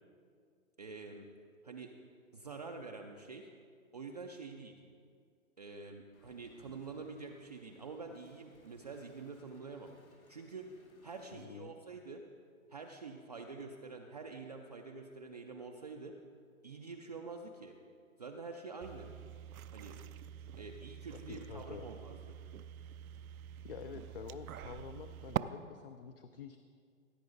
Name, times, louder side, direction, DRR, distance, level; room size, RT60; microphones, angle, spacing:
voice 1, 0.8-1.3 1.6-1.9 2.3-3.5 3.9-4.7 5.6-9.9 10.3-10.7 11.0-12.2 12.7-16.1 16.6-17.7 18.2-19.1 19.7-19.9 20.6-22.2, right 4 dB, 30° right, 1 dB, 0.4 m, -47 dB
Wind, 6.1-11.4, left 2 dB, 90° left, 2.2 m, -65 dB
voice 2, 11.3-11.7 21.1-21.9 23.6-26.6, left 7 dB, 45° left, 10 dB, 0.4 m, -48 dB
sound 1, 18.8-25.4, right 11 dB, 85° right, 0.5 m, -44 dB
16.0 x 8.5 x 3.9 m, 2.2 s
hypercardioid pair, 155°, 41 cm